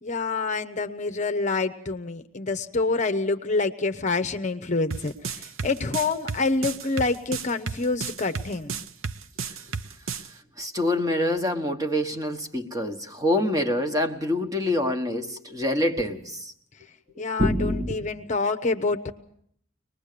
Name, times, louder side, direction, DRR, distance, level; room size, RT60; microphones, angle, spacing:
voice 1, 0.0-8.7 17.2-19.1, left 3 dB, 35° left, 0.8 m, -27 dB
sound 1, 4.9-10.3, right 5 dB, 85° right, 0.8 m, -32 dB
voice 2, 10.6-16.5 17.2-18.0, left 1 dB, 20° right, 1.4 m, -26 dB
24.0 x 20.0 x 6.7 m
head